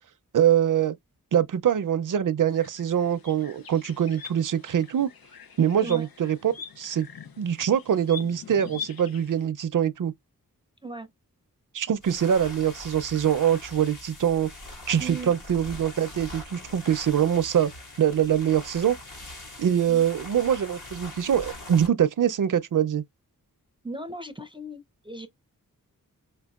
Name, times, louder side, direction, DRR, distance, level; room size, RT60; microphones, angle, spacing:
voice 1, 0.3-0.9 1.3-5.1 5.6-7.1 7.4-10.1 11.7-14.5 14.9-17.7 18.0-19.0 19.6-23.0, right 9 dB, 65° right, 0.5 m, -24 dB
sound 1, 2.5-9.5, left 6 dB, 85° left, 0.6 m, -43 dB
sound 2, 12.0-21.9, left 2 dB, 55° left, 1.8 m, -42 dB
voice 2, 15.0-15.3 23.8-25.3, right 2 dB, 15° right, 0.5 m, -37 dB
5.2 x 2.1 x 2.3 m
wide cardioid pair, 75°, 35 cm